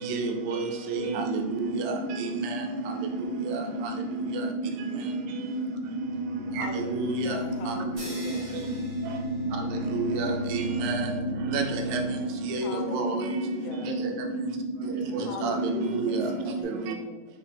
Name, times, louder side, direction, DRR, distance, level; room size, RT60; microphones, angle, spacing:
voice 1, 0.0-2.9 3.5-3.6 4.3-4.5 6.6-7.4 7.7-7.8 9.8-11.2 11.5-12.0 12.5-13.2 13.8-14.1 14.4-14.5 15.1-16.3 16.6-16.9, right 4 dB, 90° right, 3 dB, 2.1 m, -31 dB
sound 1, 0.9-16.6, right 1 dB, 65° left, 1.2 m, -32 dB
voice 2, 5.5-6.5 14.7-15.3 15.6-15.8, left 2 dB, 70° right, -5 dB, 1.4 m, -49 dB
sound 2, 5.8-12.7, left 2 dB, 35° right, 0.8 m, -40 dB
voice 3, 6.6-8.5 12.6-13.9 15.2-17.3, left 2 dB, 80° left, 3 dB, 2.0 m, -39 dB
sound 3, 8.0-10.1, right 1 dB, 50° right, 1.1 m, -44 dB
5.3 x 2.0 x 4.1 m, 1.2 s
omnidirectional pair, 3.5 m